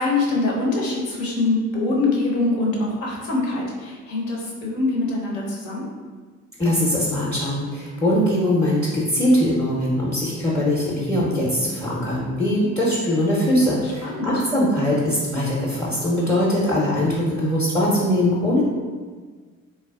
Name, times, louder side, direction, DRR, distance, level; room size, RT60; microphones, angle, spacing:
voice 1, 0.0-5.8 13.8-14.3, left 2 dB, 75° left, -3 dB, 0.7 m, -24 dB
voice 2, 6.6-18.6, left 1 dB, 5° left, -7 dB, 0.6 m, -21 dB
3.3 x 2.2 x 2.3 m, 1.5 s
figure-of-eight pair, 50°, 39 cm